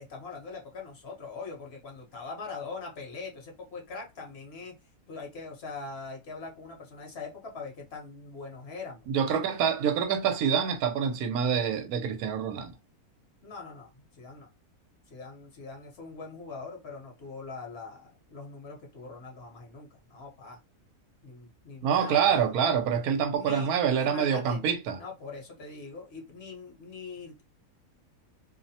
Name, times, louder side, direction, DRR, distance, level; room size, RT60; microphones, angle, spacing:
voice 1, 0.0-4.8 5.1-9.4 13.4-14.5 15.1-20.6 21.2-22.5 23.3-23.7 24.0-24.6 25.0-27.4, left 4 dB, 50° left, 0.9 m, -42 dB
voice 2, 9.1-12.7 21.8-25.0, right 7 dB, 85° right, 1.1 m, -26 dB
2.7 x 2.1 x 2.7 m
omnidirectional pair, 1.6 m